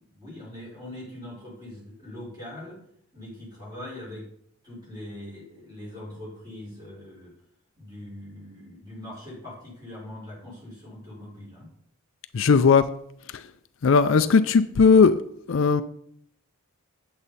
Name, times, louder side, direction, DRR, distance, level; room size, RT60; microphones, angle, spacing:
voice 1, 0.0-2.8 3.1-4.3 4.6-7.3 7.8-11.7, left 1 dB, 20° right, -5 dB, 4.6 m, -41 dB
voice 2, 12.3-12.9 13.8-15.2 15.5-15.8, left 5 dB, 60° left, 11 dB, 0.4 m, -17 dB
8.7 x 8.1 x 4.1 m, 0.68 s
head